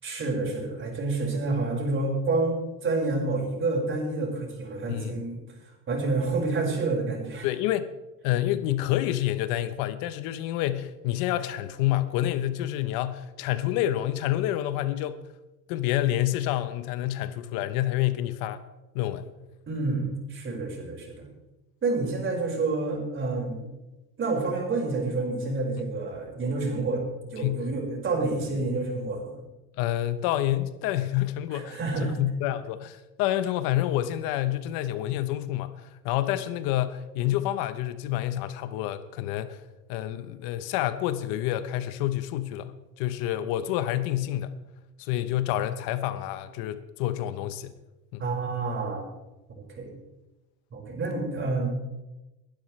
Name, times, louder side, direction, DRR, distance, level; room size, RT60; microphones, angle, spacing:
voice 1, 0.0-5.4 5.9-7.5 19.7-21.2 21.8-23.6 24.2-29.4 31.5-32.2 48.2-49.1 49.7-49.9 50.7-51.8, right 3 dB, 35° right, 5.2 m, -28 dB
voice 2, 4.9-5.2 7.4-7.9 8.2-15.2 15.7-18.6 18.9-19.3 27.4-27.7 29.8-39.6 39.9-44.6 45.0-47.7 48.1-48.3, left 13 dB, 80° left, 1.0 m, -28 dB
21.5 x 11.5 x 3.3 m
cardioid pair, 115°, 35 cm